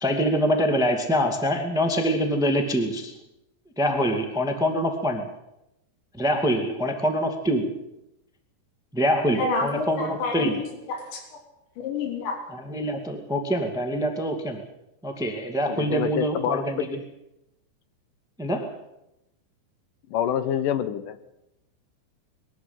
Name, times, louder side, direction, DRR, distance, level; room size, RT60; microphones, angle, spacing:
voice 1, 0.0-3.1 3.8-5.2 6.2-7.7 8.9-10.6 12.5-14.6 15.0-16.9 18.4-18.7, equal, 5° right, 5 dB, 0.4 m, -25 dB
voice 2, 9.4-11.2 11.8-12.4, left 3 dB, 85° left, 3 dB, 5.6 m, -29 dB
voice 3, 15.7-16.6 20.1-21.2, left 9 dB, 65° left, 12 dB, 2.2 m, -26 dB
22.0 x 13.0 x 9.8 m, 0.88 s
omnidirectional pair, 5.0 m